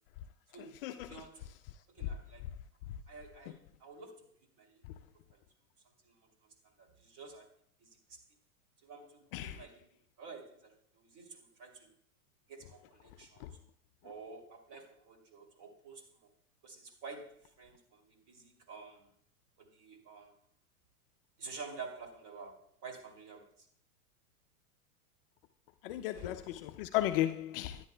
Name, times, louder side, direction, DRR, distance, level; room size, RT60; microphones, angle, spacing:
voice 1, 0.5-1.5 2.0-2.4 3.1-4.2 4.6-4.9 5.3-5.4 6.0-6.1 6.8-7.5 7.8-7.9 8.8-9.9 10.2-11.9 12.5-13.6 14.0-16.0 16.6-19.1 19.6-20.3 21.4-23.5 25.9-26.6, right 4 dB, 45° right, 2.9 m, -50 dB
voice 2, 25.8-26.4 26.8-27.8, left 14 dB, 40° left, 0.4 m, -33 dB
13.0 x 10.0 x 2.2 m
hypercardioid pair, 115°, 44 cm